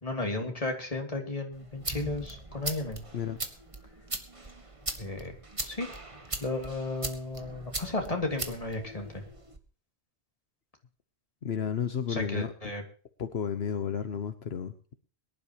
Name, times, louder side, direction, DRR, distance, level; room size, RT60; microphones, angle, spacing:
voice 1, 0.0-3.0 5.0-5.3 5.6-5.9 6.4-9.2 12.1-12.8, left 2 dB, 35° left, 3 dB, 3.0 m, -34 dB
sound 1, 1.5-9.6, right 2 dB, 30° right, 1.7 m, -39 dB
voice 2, 11.4-12.5 13.2-14.7, left 7 dB, 75° left, 9 dB, 1.3 m, -32 dB
23.0 x 11.5 x 3.0 m, 0.40 s
omnidirectional pair, 1.1 m